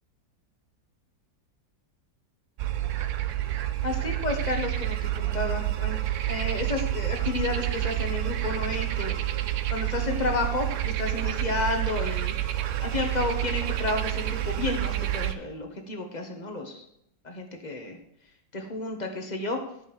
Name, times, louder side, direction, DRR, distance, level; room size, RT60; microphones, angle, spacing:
sound 1, 2.6-15.3, right 13 dB, 75° right, 0.7 m, -29 dB
voice 1, 3.8-6.0 6.3-9.1 9.7-12.3 12.8-16.8 17.2-18.0 18.5-19.6, left 2 dB, 30° left, 3 dB, 1.1 m, -31 dB
10.5 x 5.3 x 5.3 m, 0.76 s
omnidirectional pair, 1.9 m